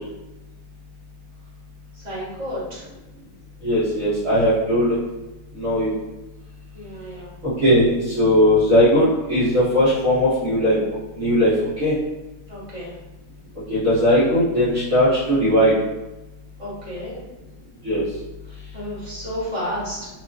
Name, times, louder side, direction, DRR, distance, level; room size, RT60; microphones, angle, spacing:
voice 1, 1.9-2.9 6.7-7.3 12.5-12.9 16.6-17.2 18.7-20.1, equal, 25° right, -10 dB, 1.5 m, -31 dB
voice 2, 3.6-5.0 5.5-5.9 7.4-12.0 13.7-15.7 17.8-18.0, equal, 50° right, -16 dB, 1.9 m, -18 dB
3.9 x 3.0 x 2.3 m, 1.0 s
omnidirectional pair, 1.9 m